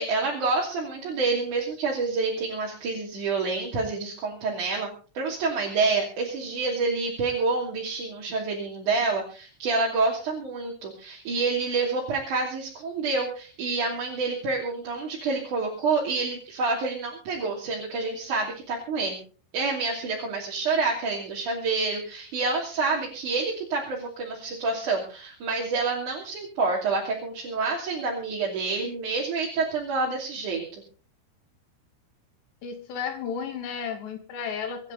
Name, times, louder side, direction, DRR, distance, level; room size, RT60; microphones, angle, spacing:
voice 1, 0.0-4.9 5.1-19.2 19.5-30.6, right 3 dB, 45° right, -3 dB, 4.0 m, -28 dB
voice 2, 32.6-34.9, left 6 dB, 70° left, 5 dB, 4.5 m, -33 dB
25.5 x 10.5 x 4.0 m, 0.39 s
omnidirectional pair, 5.3 m